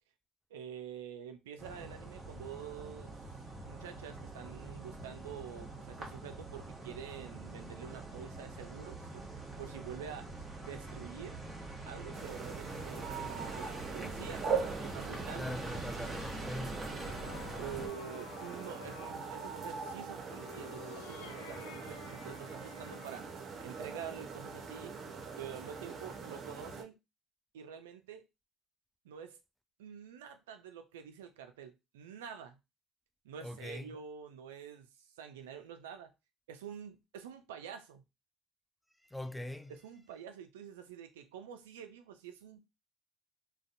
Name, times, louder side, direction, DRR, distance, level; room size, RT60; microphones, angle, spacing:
voice 1, 0.5-3.2 3.7-10.3 10.6-11.4 11.9-14.5 14.8-15.5 17.5-23.3 23.6-24.9 25.4-27.0 27.5-28.2 29.0-29.4 29.8-32.6 33.2-34.9 35.2-36.1 36.5-38.0 39.7-42.6, right 8 dB, 90° right, 0.4 m, -47 dB
sound 1, 1.6-17.9, right 2 dB, 25° right, 1.0 m, -44 dB
sound 2, 12.1-26.8, right 5 dB, 55° right, 0.7 m, -42 dB
voice 2, 15.3-17.0 33.4-34.0 39.0-39.7, left 1 dB, 5° left, 0.4 m, -42 dB
sound 3, 16.3-19.2 20.2-23.3, left 6 dB, 85° left, 0.3 m, -52 dB
2.5 x 2.2 x 2.5 m
hypercardioid pair, 60°, 0 cm